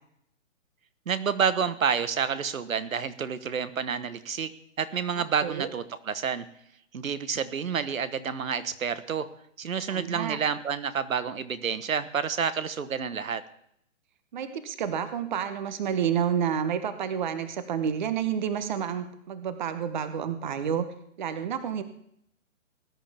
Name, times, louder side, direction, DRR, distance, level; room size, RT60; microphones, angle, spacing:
voice 1, 1.1-4.5 4.8-6.4 6.9-9.3 9.6-13.4, right 7 dB, 80° right, 13 dB, 1.3 m, -29 dB
voice 2, 5.2-5.7 9.9-10.4 14.3-20.9 21.2-21.8, right 8 dB, 35° right, 11 dB, 1.0 m, -29 dB
20.0 x 10.5 x 3.5 m, 0.71 s
hypercardioid pair, 160°, 40 cm